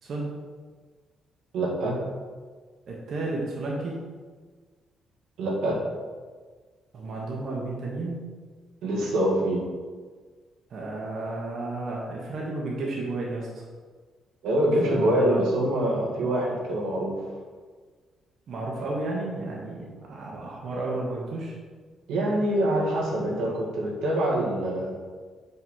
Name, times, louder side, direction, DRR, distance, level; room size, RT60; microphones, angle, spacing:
voice 1, 1.5-2.0 5.4-5.8 8.8-9.6 14.4-17.2 22.1-24.9, right 1 dB, 90° right, -4 dB, 1.7 m, -25 dB
voice 2, 2.9-4.0 6.9-8.3 10.7-13.7 14.8-15.4 18.5-21.5, right 2 dB, 60° right, -3 dB, 1.3 m, -32 dB
5.6 x 4.0 x 5.6 m, 1.5 s
cardioid pair, 90°, 0 cm